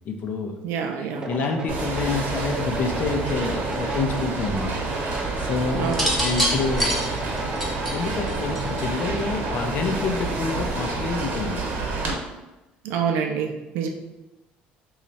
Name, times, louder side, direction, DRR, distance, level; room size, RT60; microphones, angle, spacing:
voice 1, 0.0-0.6 1.3-7.0 7.9-11.6, left 4 dB, 50° left, 4 dB, 0.5 m, -28 dB
voice 2, 0.6-1.3 5.7-6.1 12.8-13.9, right 7 dB, 75° right, 4 dB, 0.5 m, -27 dB
sound 1, 1.1-10.8, right 2 dB, 20° right, 0.4 m, -34 dB
sound 2, 1.7-12.1, right 3 dB, 55° right, 0.9 m, -29 dB
sound 3, 5.9-9.0 10.1-10.5, equal, ahead, 1.0 m, -26 dB
3.1 x 2.4 x 3.9 m, 1.0 s
cardioid pair, 115°, 4 cm